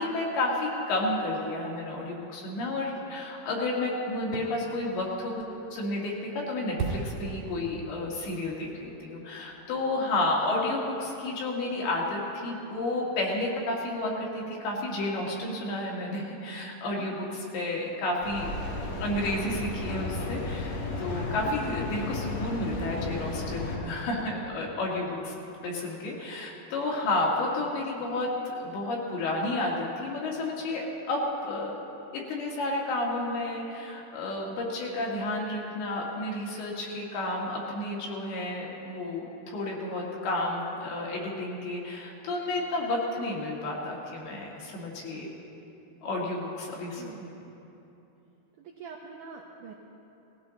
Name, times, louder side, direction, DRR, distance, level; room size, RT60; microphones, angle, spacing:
voice 1, 0.0-5.4 5.7-18.5 19.0-25.3 25.6-31.8 32.1-45.3 46.0-47.3, left 2 dB, 70° left, -3 dB, 3.8 m, -31 dB
Fireworks, 4.2-10.0 10.4-10.5, right 4 dB, 50° right, 3.1 m, -40 dB
voice 2, 16.9-17.2 47.0-47.5 48.6-49.7, right 5 dB, 80° right, 0 dB, 1.8 m, -45 dB
Mechanical fan, 18.2-23.8, left 2 dB, 90° left, 3.9 m, -34 dB
19.0 x 16.0 x 4.0 m, 2.9 s
omnidirectional pair, 4.8 m